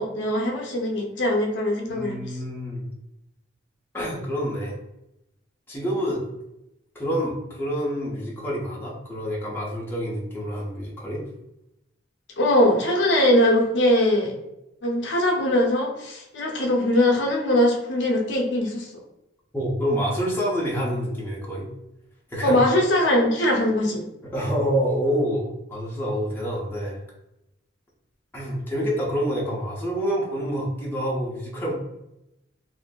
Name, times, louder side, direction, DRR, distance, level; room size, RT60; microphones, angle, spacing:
voice 1, 0.0-2.2 12.4-14.3 14.8-18.9 22.4-24.0, left 1 dB, 75° left, 0 dB, 0.6 m, -21 dB
voice 2, 1.9-2.9 3.9-4.7 5.7-6.2 6.9-11.2 19.5-21.7 22.3-22.6 24.2-27.0 28.3-31.7, equal, 10° left, -5 dB, 0.6 m, -27 dB
2.5 x 2.5 x 2.2 m, 0.88 s
head